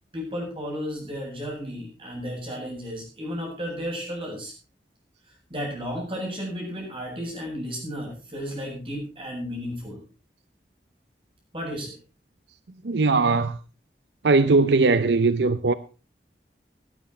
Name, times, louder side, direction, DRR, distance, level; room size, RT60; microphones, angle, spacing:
voice 1, 0.1-4.5 5.5-10.0 11.5-12.0, equal, 30° right, 7.8 m, -33 dB
voice 2, 12.8-13.6 14.2-15.7, right 3 dB, 80° right, 0.7 m, -20 dB
18.5 x 10.0 x 4.3 m
head